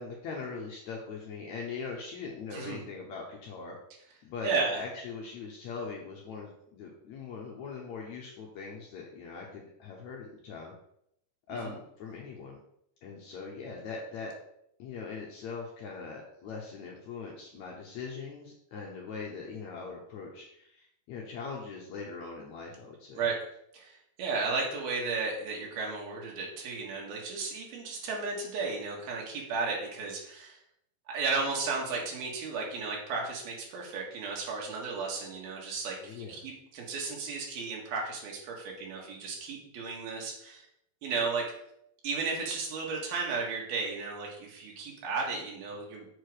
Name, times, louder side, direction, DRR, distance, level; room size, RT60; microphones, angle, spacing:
voice 1, 0.0-3.8 4.2-10.7 11.5-12.6 13.0-14.3 14.8-23.3 36.0-36.4, left 4 dB, 70° left, -1 dB, 1.8 m, -41 dB
voice 2, 4.4-4.8 11.7-11.8 23.2-23.4 23.7-30.6 31.1-40.7 41.0-41.4 42.0-46.1, right 4 dB, 85° right, -2 dB, 3.4 m, -34 dB
7.3 x 4.7 x 4.8 m, 0.74 s
omnidirectional pair, 4.3 m